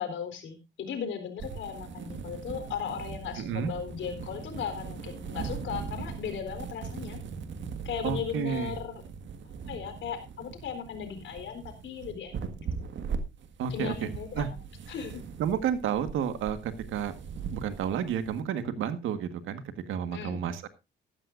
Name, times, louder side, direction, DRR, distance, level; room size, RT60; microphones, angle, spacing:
voice 1, 0.0-7.2 7.8-8.9 9.7-12.7 13.7-14.6 14.9-15.2 20.1-20.4, left 7 dB, 70° left, 7 dB, 4.2 m, -37 dB
sound 1, 1.4-18.4, right 6 dB, 70° right, 1.7 m, -40 dB
voice 2, 3.4-3.7 8.0-8.8 13.6-13.9 14.4-14.5 15.4-17.1 17.5-19.6 19.9-20.7, right 8 dB, 85° right, 11 dB, 1.6 m, -31 dB
14.5 x 13.0 x 2.6 m, 0.26 s
cardioid pair, 90°, 20 cm